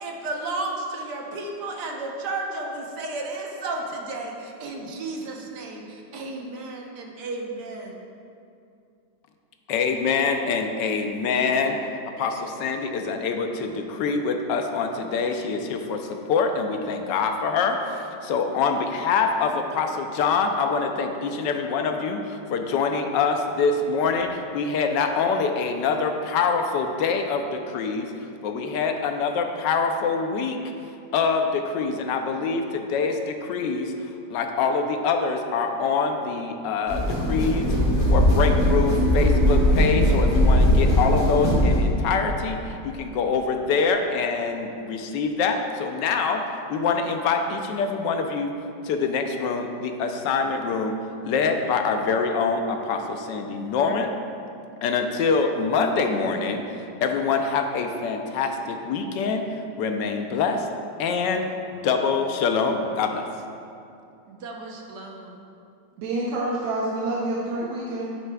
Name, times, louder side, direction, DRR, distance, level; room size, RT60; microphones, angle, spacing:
voice 1, 0.0-8.0 64.3-65.4, right 2 dB, 65° right, 0 dB, 1.4 m, -33 dB
voice 2, 9.7-11.8 12.2-28.1 28.4-30.6 31.1-33.9 34.3-37.7 38.1-46.4 46.7-48.5 48.8-51.0 51.2-54.1 54.8-56.6 57.0-59.4 59.8-60.7 61.0-61.5 61.7-63.2, left 5 dB, 70° left, 5 dB, 1.2 m, -25 dB
sound 1, 36.9-41.9, equal, 35° left, 1.7 m, -19 dB
voice 3, 66.0-68.2, right 2 dB, 85° right, -5 dB, 1.6 m, -27 dB
9.3 x 9.0 x 2.3 m, 2.6 s
omnidirectional pair, 2.1 m